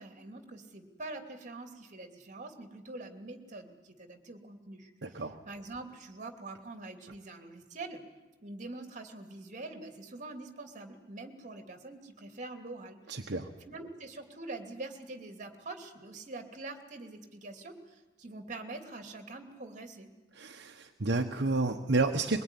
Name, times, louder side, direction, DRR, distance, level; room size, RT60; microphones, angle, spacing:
voice 1, 0.0-8.0 8.4-13.3 13.6-20.1, right 2 dB, 45° right, 5 dB, 2.8 m, -45 dB
voice 2, 5.0-5.4 13.1-13.5 20.3-22.4, right 3 dB, 65° right, 3 dB, 1.3 m, -30 dB
22.5 x 22.0 x 9.9 m, 1.2 s
head